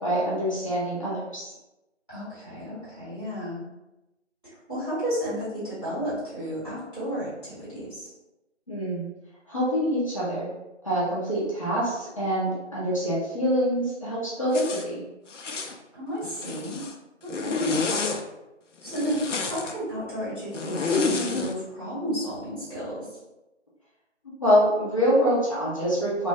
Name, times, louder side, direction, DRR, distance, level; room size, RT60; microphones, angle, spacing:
voice 1, 0.0-1.5 8.7-9.0 9.5-10.5 10.8-15.0 24.4-26.3, equal, 30° left, -9 dB, 0.6 m, -25 dB
voice 2, 2.1-3.6 4.4-8.1 15.9-16.8 17.2-18.0 18.8-23.1, equal, ahead, -16 dB, 0.9 m, -32 dB
Zipper (clothing), 14.5-14.9 15.3-15.8 16.2-16.9 17.3-18.2 18.9-19.7 20.5-21.5, left 4 dB, 80° left, 0.6 m, -29 dB
3.2 x 2.1 x 3.2 m, 0.97 s
figure-of-eight pair, 160°, 36 cm